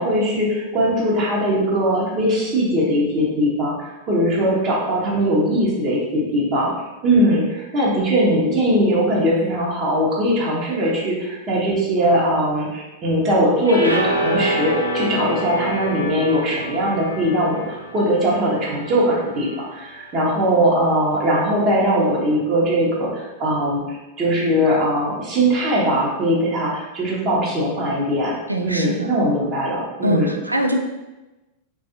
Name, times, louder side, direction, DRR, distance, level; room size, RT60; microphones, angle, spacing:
voice 1, 0.0-6.7 7.0-28.3 28.6-30.3, equal, 30° right, -5 dB, 0.9 m, -20 dB
sound 1, 13.6-19.9, equal, 85° left, 0.5 m, -27 dB
voice 2, 28.5-29.1 30.0-30.8, equal, 85° right, 4 dB, 0.3 m, -22 dB
3.3 x 2.4 x 2.7 m, 1.1 s
figure-of-eight pair, 90°, 0 cm